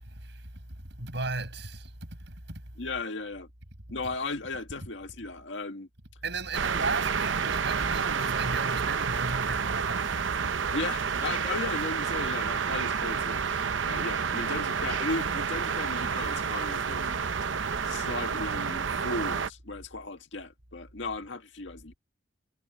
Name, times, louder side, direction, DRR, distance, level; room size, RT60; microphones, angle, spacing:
voice 1, 0.0-2.6 4.0-4.1 6.2-10.4, right 3 dB, 65° right, 6.3 m, -36 dB
voice 2, 2.8-3.5 3.9-5.9 10.7-17.2 17.9-21.9, left 3 dB, 75° left, 1.9 m, -36 dB
sound 1, 6.5-19.5, right 6 dB, 85° right, 0.8 m, -29 dB
head